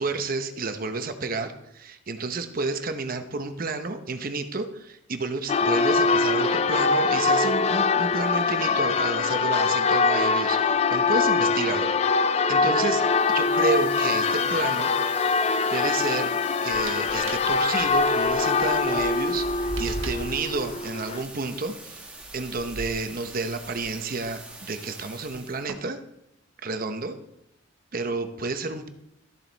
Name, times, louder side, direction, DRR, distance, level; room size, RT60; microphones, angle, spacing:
voice 1, 0.0-11.9 12.3-13.0 13.3-14.9 15.7-22.1 22.3-26.0 26.6-27.2 27.9-28.9, right 3 dB, 45° right, 8 dB, 0.9 m, -30 dB
Church bell, 5.5-21.2, left 4 dB, 30° left, 0.4 m, -23 dB
sound 1, 13.0-25.7, right 2 dB, 5° right, 1.6 m, -44 dB
sound 2, 16.7-24.5 25.2-25.8, right 1 dB, 90° right, 1.2 m, -39 dB
13.0 x 7.6 x 4.1 m, 0.80 s
head